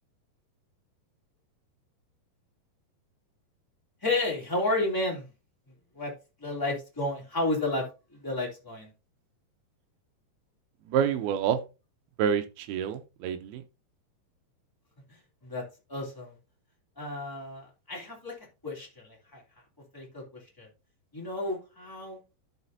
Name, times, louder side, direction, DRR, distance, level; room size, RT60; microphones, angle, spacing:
voice 1, 4.0-5.3 5.9-6.1 6.4-8.9 15.1-15.2 15.4-15.6 15.9-16.3 17.0-18.3 18.6-19.4 19.9-20.7 21.1-22.2, left 2 dB, 5° left, -3 dB, 1.9 m, -32 dB
voice 2, 10.9-11.6 12.2-13.6, right 8 dB, 80° right, 9 dB, 2.3 m, -27 dB
12.5 x 5.9 x 2.7 m, 0.28 s
omnidirectional pair, 5.0 m